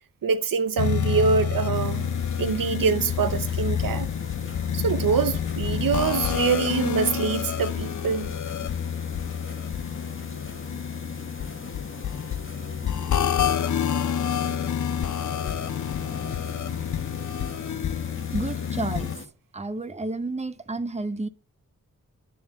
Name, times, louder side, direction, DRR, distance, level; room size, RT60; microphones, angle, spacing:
voice 1, 0.2-2.1 2.4-4.1 4.7-8.3, right 6 dB, 70° right, 0.7 m, -25 dB
sound 1, 0.8-19.2, left 9 dB, 60° left, 0.5 m, -28 dB
sound 2, 1.7-19.3, left 3 dB, 35° left, 1.4 m, -39 dB
voice 2, 18.3-19.3 19.5-21.3, right 3 dB, 20° right, 0.8 m, -31 dB
10.0 x 3.5 x 6.7 m
cardioid pair, 50°, 34 cm